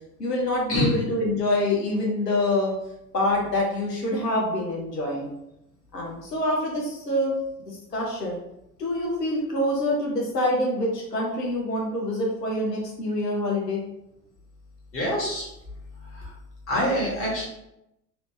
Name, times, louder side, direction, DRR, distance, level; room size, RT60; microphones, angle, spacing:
voice 1, 0.2-2.7 3.1-5.3 5.9-7.3 7.7-8.4 8.8-13.8, left 1 dB, 85° left, -3 dB, 0.8 m, -26 dB
voice 2, 14.9-15.5 16.1-16.3 16.7-17.4, left 1 dB, 30° left, -4 dB, 1.5 m, -25 dB
3.1 x 2.7 x 3.1 m, 0.86 s
figure-of-eight pair, 80°, 47 cm